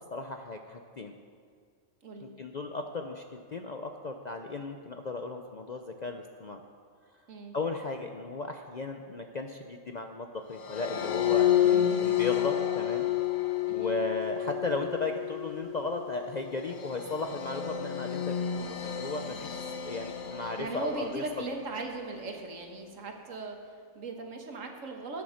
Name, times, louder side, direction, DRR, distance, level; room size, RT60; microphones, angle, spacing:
voice 1, 0.1-1.1 2.4-6.6 7.5-13.1 13.7-21.2, left 3 dB, 45° left, 4 dB, 0.6 m, -36 dB
sound 1, 10.6-21.9, left 11 dB, 90° left, 1.3 m, -30 dB
voice 2, 11.6-12.3 13.7-14.0 20.6-25.2, right 3 dB, 70° right, 3 dB, 1.7 m, -39 dB
13.5 x 9.4 x 6.4 m, 2.1 s
omnidirectional pair, 1.4 m